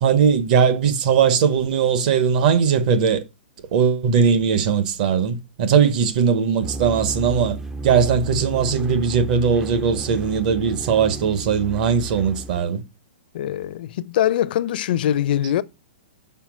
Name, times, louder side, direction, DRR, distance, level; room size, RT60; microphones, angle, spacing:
voice 1, 0.0-3.2 3.7-7.6 7.8-12.8, right 6 dB, 50° right, 0.9 m, -19 dB
sound 1, 6.6-12.6, right 2 dB, 5° right, 0.3 m, -33 dB
voice 2, 13.3-15.6, left 11 dB, 55° left, 0.5 m, -22 dB
5.7 x 4.5 x 6.0 m
hypercardioid pair, 155°, 6 cm